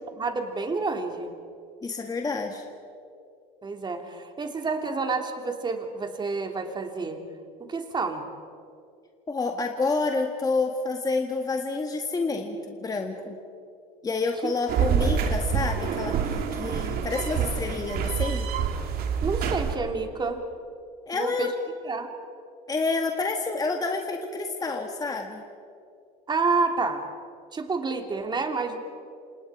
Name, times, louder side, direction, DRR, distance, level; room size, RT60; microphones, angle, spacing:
voice 1, 0.2-1.3 3.6-7.2 7.7-8.3 14.4-14.5 19.2-20.4 21.1-21.5 21.8-22.1 26.3-27.0 27.5-28.8, right 4 dB, 25° right, 5 dB, 2.9 m, -29 dB
voice 2, 1.8-2.6 9.3-13.4 14.0-18.5 21.1-21.6 22.7-25.4, left 3 dB, 20° left, 3 dB, 1.8 m, -29 dB
sound 1, 14.7-19.8, right 7 dB, 55° right, 2.4 m, -27 dB
28.0 x 27.0 x 4.9 m, 2.4 s
supercardioid pair, 105°, 19 cm